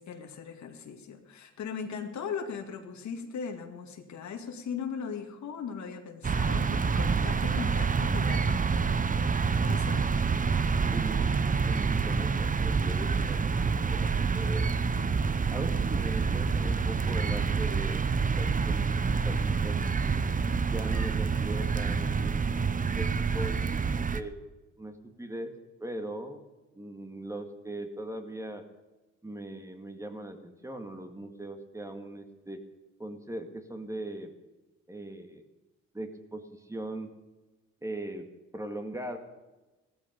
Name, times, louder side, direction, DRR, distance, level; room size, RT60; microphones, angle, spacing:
voice 1, 0.0-9.0 9.7-10.0, left 6 dB, 65° left, 5 dB, 2.2 m, -39 dB
sound 1, 6.2-24.2, right 5 dB, 25° right, 0.9 m, -27 dB
voice 2, 10.9-11.3 11.7-14.7 15.5-19.8 20.0-20.1 20.7-22.6 23.0-23.1 23.3-24.3 24.8-25.5 25.8-26.4 26.8-28.6 29.2-32.6 33.0-34.3 34.9-35.4 35.9-37.1 37.8-38.3 38.5-39.2, right 1 dB, 10° right, 6 dB, 2.0 m, -40 dB
16.0 x 14.0 x 5.3 m, 1.1 s
cardioid pair, 90°, 30 cm